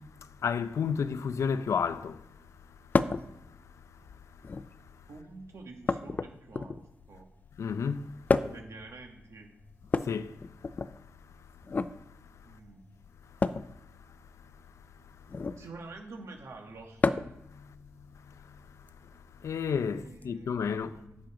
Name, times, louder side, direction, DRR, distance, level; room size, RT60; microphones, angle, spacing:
voice 1, 0.4-2.1 7.6-8.0 10.1-10.3 19.4-20.9, left 6 dB, 90° left, 0.5 m, -30 dB
sound 1, 2.9-3.3 4.3-4.8 5.9-7.0 8.3-8.7 9.8-10.9 11.6-11.9 13.4-13.7 15.3-15.6 17.0-17.4 18.9-19.0 20.2-20.3, left 4 dB, 35° left, 0.4 m, -29 dB
voice 2, 5.1-7.3 8.5-9.5 12.5-13.0 15.6-17.0 19.9-21.2, right 3 dB, 75° right, 1.8 m, -48 dB
10.5 x 7.4 x 5.0 m
wide cardioid pair, 180°, 5 cm